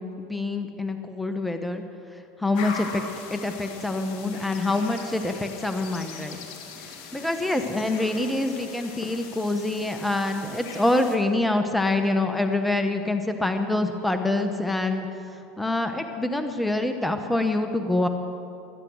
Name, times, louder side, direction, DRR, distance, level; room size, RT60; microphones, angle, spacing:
voice 1, 0.0-1.8 2.4-3.0 3.3-6.4 6.8-15.1 15.3-18.1, left 2 dB, 5° left, 7 dB, 1.1 m, -26 dB
sound 1, 2.5-11.2, left 5 dB, 60° left, 2.1 m, -40 dB
21.0 x 9.6 x 6.4 m, 2.7 s
hypercardioid pair, 90°, 0 cm